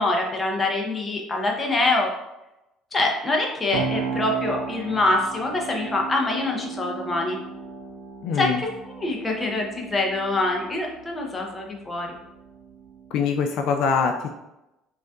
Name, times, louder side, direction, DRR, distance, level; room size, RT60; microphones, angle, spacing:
voice 1, 0.0-2.1 2.9-7.4 8.4-8.7 8.9-12.1, left 2 dB, 20° left, 0 dB, 0.6 m, -25 dB
sound 1, 3.7-13.5, right 5 dB, 85° right, 0.5 m, -36 dB
voice 2, 8.2-8.6 13.1-14.3, left 5 dB, 60° left, 4 dB, 0.3 m, -23 dB
5.1 x 2.5 x 2.3 m, 0.92 s
cardioid pair, 155°, 0 cm